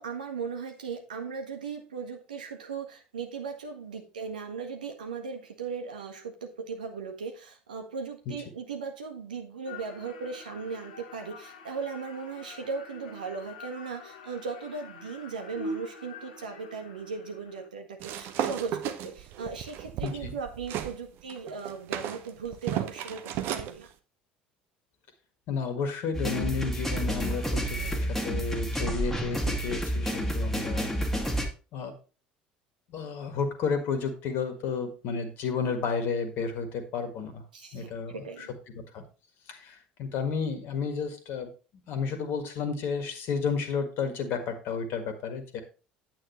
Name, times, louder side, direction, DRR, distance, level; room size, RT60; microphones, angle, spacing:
voice 1, 0.0-23.9 27.7-28.1 37.5-38.5, right 5 dB, 75° right, 4 dB, 1.6 m, -38 dB
sound 1, 9.6-17.7, left 1 dB, 70° left, 1.1 m, -44 dB
sound 2, 18.0-21.0 21.3-23.7, right 11 dB, 55° right, 0.9 m, -34 dB
voice 2, 20.0-20.3 25.5-30.9 31.7-31.9 32.9-37.4 37.7-38.5 38.9-39.0 39.5-41.5 41.9-45.6, left 5 dB, 50° left, 8 dB, 1.6 m, -32 dB
sound 3, 26.1-31.5, equal, 5° left, 1.9 m, -30 dB
9.0 x 8.6 x 3.1 m, 0.34 s
figure-of-eight pair, 65°, 4 cm